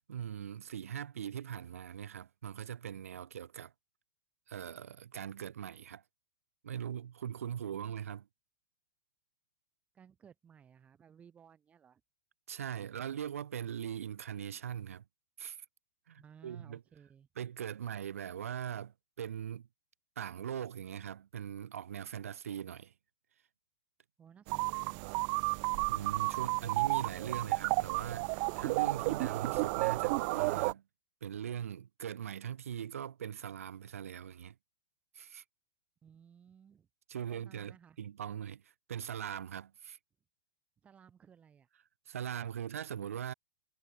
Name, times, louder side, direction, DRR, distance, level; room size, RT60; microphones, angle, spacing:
voice 1, 0.0-3.7 4.5-6.0 6.6-8.3 12.5-15.0 15.4-15.6 16.1-16.8 17.4-19.7 20.2-22.9 25.8-30.8 31.2-34.6 35.1-35.4 37.1-38.6 38.9-40.0 42.1-43.3, right 9 dB, 80° right, 5.5 m, -41 dB
voice 2, 9.9-12.0 16.2-17.3 24.2-25.2 36.0-36.9 37.3-38.0 40.8-41.7, right 7 dB, 20° right, 6.0 m, -59 dB
sound 1, 24.5-30.7, right 40 dB or more, 40° right, 0.5 m, -32 dB
hypercardioid pair, 140°, 7 cm